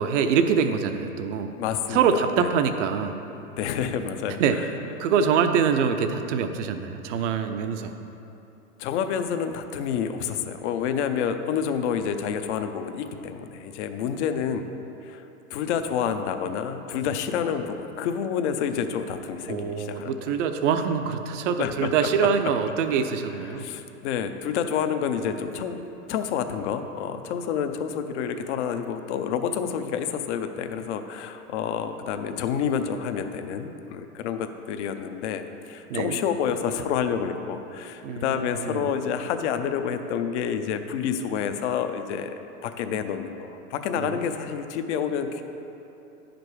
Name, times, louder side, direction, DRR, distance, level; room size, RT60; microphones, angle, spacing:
voice 1, 0.0-1.5 1.9-3.1 4.4-4.6 5.0-7.9 19.5-23.6 35.9-36.2 38.0-38.9 44.0-44.2, right 6 dB, 55° right, 7 dB, 0.6 m, -24 dB
voice 2, 1.6-2.5 3.6-4.7 7.1-7.2 8.8-14.7 15.0-20.4 21.6-22.1 23.4-25.8 26.1-42.3 42.6-45.4, left 7 dB, 50° left, 8 dB, 0.7 m, -29 dB
10.5 x 5.2 x 4.7 m, 3.0 s
hypercardioid pair, 115°, 45 cm